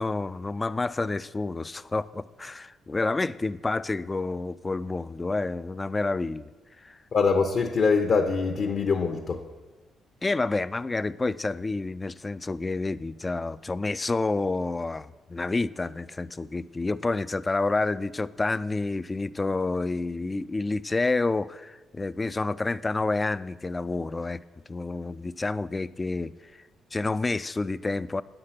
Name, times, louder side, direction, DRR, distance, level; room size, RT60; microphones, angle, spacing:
voice 1, 0.0-6.5 6.8-7.0 10.2-24.4 24.7-26.3 26.9-28.2, left 3 dB, 20° left, 15 dB, 0.3 m, -29 dB
voice 2, 7.1-9.4, left 4 dB, 55° left, 2 dB, 0.8 m, -23 dB
9.7 x 6.7 x 5.8 m, 1.2 s
cardioid pair, 90°, 0 cm